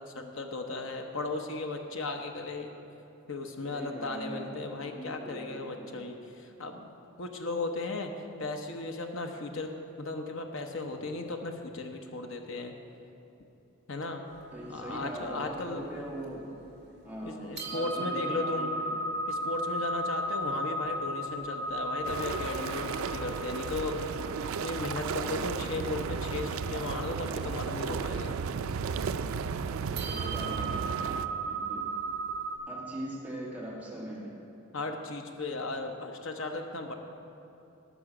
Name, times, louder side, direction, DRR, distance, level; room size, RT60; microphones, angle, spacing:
voice 1, 0.1-2.7 3.3-6.2 6.6-8.1 8.4-9.7 10.0-12.7 13.9-14.2 14.7-15.8 17.2-18.7 19.3-24.1 24.6-28.4 34.7-36.9, left 2 dB, 65° left, 3 dB, 0.9 m, -36 dB
voice 2, 3.6-6.1 14.5-16.4 17.0-19.0 25.2-25.8 30.1-31.9 32.7-34.4, right 1 dB, 10° right, -5 dB, 2.0 m, -41 dB
sound 1, 14.3-16.6 17.1-17.2 17.6-32.6, right 1 dB, 55° right, 2.0 m, -36 dB
sound 2, 22.0-31.3, right 6 dB, 85° right, 0.4 m, -34 dB
18.5 x 6.3 x 4.9 m, 2.8 s
head